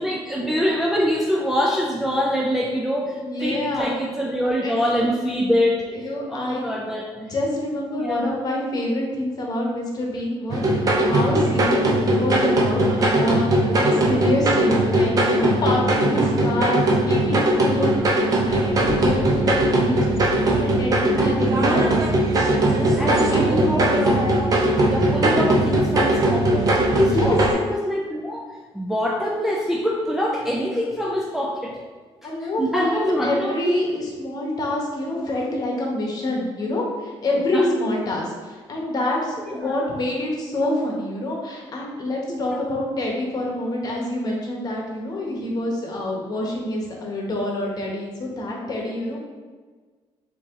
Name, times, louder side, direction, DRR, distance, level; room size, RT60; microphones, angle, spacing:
voice 1, 0.0-5.9 6.3-7.1 8.0-8.4 18.1-18.2 21.2-21.9 23.0-24.2 24.9-28.5 28.7-31.8 32.2-33.8 37.5-37.7 39.4-39.8 42.3-42.7, equal, 5° right, -2 dB, 0.3 m, -25 dB
voice 2, 3.1-3.9 4.6-5.0 5.9-6.7 7.1-10.7 11.0-20.0 20.5-21.9 22.6-23.5 27.0-27.4 32.2-49.2, left 1 dB, 40° left, -1 dB, 1.0 m, -27 dB
sound 1, 10.5-27.5, right 1 dB, 35° right, 0.7 m, -20 dB
4.5 x 2.9 x 3.6 m, 1.4 s
cardioid pair, 150°, 10 cm